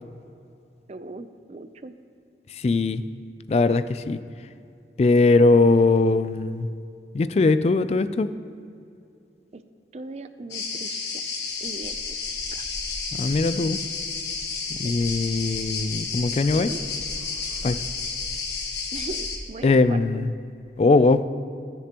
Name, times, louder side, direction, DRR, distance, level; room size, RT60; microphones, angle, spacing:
voice 1, 0.9-2.0 9.5-9.6 9.9-11.2 11.6-12.2 12.5-12.6 14.8-15.0 16.5-16.8 18.9-20.2, right 2 dB, 35° right, 11 dB, 0.4 m, -39 dB
voice 2, 2.5-3.0 3.5-4.2 5.0-6.7 7.1-8.3 13.2-13.8 14.8-16.7 17.6-17.8 19.6-20.3 20.8-21.2, left 3 dB, 35° left, 13 dB, 0.3 m, -20 dB
sound 1, 10.5-19.4, left 4 dB, 80° left, 1.3 m, -31 dB
19.5 x 6.8 x 2.9 m, 2.5 s
head